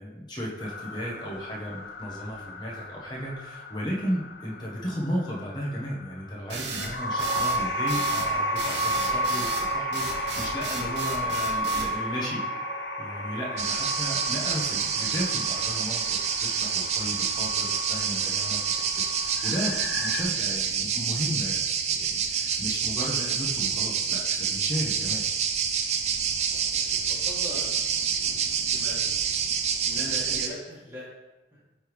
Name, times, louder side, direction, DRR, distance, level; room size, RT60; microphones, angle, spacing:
voice 1, 0.0-12.4 13.0-18.6 19.2-25.3, equal, 25° left, -3 dB, 1.1 m, -34 dB
sound 1, 0.6-20.2, equal, 70° left, 0.7 m, -33 dB
sound 2, 6.5-11.9, right 5 dB, 75° right, 0.7 m, -34 dB
voice 2, 13.6-14.0 26.4-29.2 29.8-31.0, equal, 15° right, -8 dB, 1.7 m, -42 dB
sound 3, 13.6-30.5, right 7 dB, 35° right, 0.4 m, -27 dB
8.8 x 3.5 x 3.1 m, 1.1 s
head